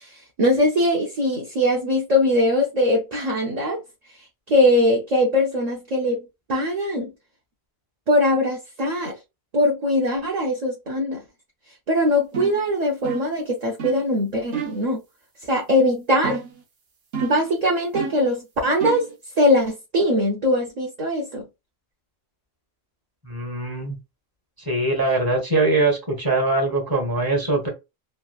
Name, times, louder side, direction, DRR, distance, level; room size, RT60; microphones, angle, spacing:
voice 1, 0.0-3.8 4.5-7.1 8.1-9.2 9.5-11.2 11.9-15.0 15.4-16.4 17.2-19.1 19.4-21.4, left 1 dB, 45° right, 0.7 m, -21 dB
sound 1, 12.3-12.6 13.0-13.4 13.8-14.1 14.5-14.9 16.2-16.6 17.1-17.5 17.9-18.3 18.8-19.1, right 6 dB, 70° right, 1.0 m, -30 dB
voice 2, 23.2-24.0 24.6-27.7, right 2 dB, 20° right, 1.1 m, -22 dB
3.2 x 2.4 x 2.3 m
omnidirectional pair, 1.1 m